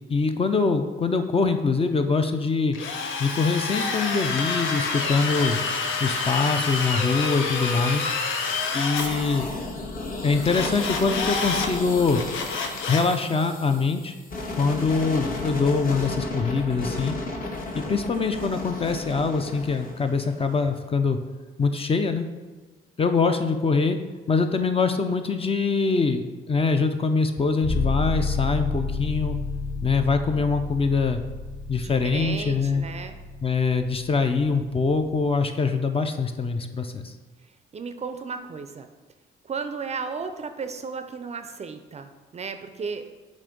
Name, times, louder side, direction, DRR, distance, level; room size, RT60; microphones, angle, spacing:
voice 1, 0.1-2.8 3.2-5.6 6.0-8.1 8.7-9.5 10.2-12.2 12.9-14.1 14.6-17.1 17.7-21.2 21.6-22.2 23.0-24.0 24.3-29.4 29.8-31.2 31.7-32.9 33.4-37.1, left 4 dB, 30° left, 7 dB, 0.5 m, -23 dB
Drill, 2.7-9.1 10.4-11.7 12.1-13.1, left 4 dB, 80° left, 0.7 m, -28 dB
sound 1, 9.0-20.8, left 2 dB, 45° left, 1.0 m, -34 dB
sound 2, 27.6-35.4, left 4 dB, 60° left, 1.9 m, -31 dB
voice 2, 31.8-33.2 37.7-38.9 39.5-43.0, right 5 dB, 35° right, 8 dB, 0.4 m, -34 dB
7.2 x 2.6 x 5.2 m, 1.3 s
cardioid pair, 90°, 20 cm